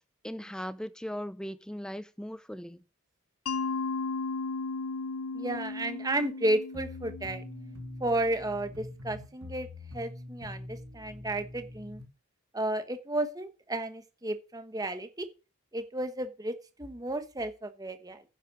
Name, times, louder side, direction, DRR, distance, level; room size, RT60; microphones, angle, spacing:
voice 1, 0.2-2.8, equal, 5° left, 0.5 m, -38 dB
Mallet percussion, 3.5-8.2, left 4 dB, 75° left, 0.6 m, -35 dB
voice 2, 5.3-7.4 8.0-9.7 9.9-12.0 12.5-15.3 15.7-18.2, right 1 dB, 15° right, 1.1 m, -33 dB
sound 1, 6.7-12.1, left 2 dB, 85° right, 2.5 m, -44 dB
10.0 x 7.6 x 6.1 m
head